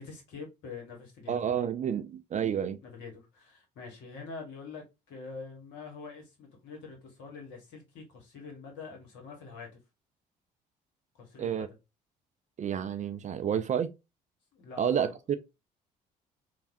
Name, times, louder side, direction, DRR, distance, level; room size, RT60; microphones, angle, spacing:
voice 1, 0.0-1.5 2.8-9.7 11.2-11.6 14.5-14.8, left 4 dB, 65° left, 1.4 m, -45 dB
voice 2, 1.3-2.8 11.4-11.7 12.6-13.9 14.8-15.4, right 8 dB, 35° right, 0.4 m, -30 dB
3.2 x 2.3 x 2.6 m
hypercardioid pair, 50°, 21 cm